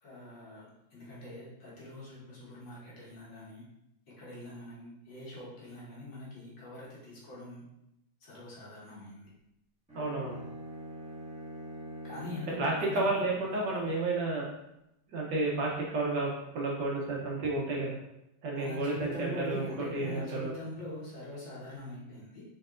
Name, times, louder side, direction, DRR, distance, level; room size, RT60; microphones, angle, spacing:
voice 1, 0.0-3.7 4.1-7.6 8.2-9.3 12.0-13.3 18.5-22.4, left 1 dB, 60° left, -7 dB, 2.1 m, -43 dB
Bowed string instrument, 9.9-13.9, equal, 5° right, 1.3 m, -44 dB
voice 2, 9.9-10.4 12.6-14.5 15.1-17.9 18.4-20.5, right 2 dB, 65° right, -3 dB, 1.3 m, -31 dB
4.4 x 4.3 x 2.5 m, 0.85 s
omnidirectional pair, 2.3 m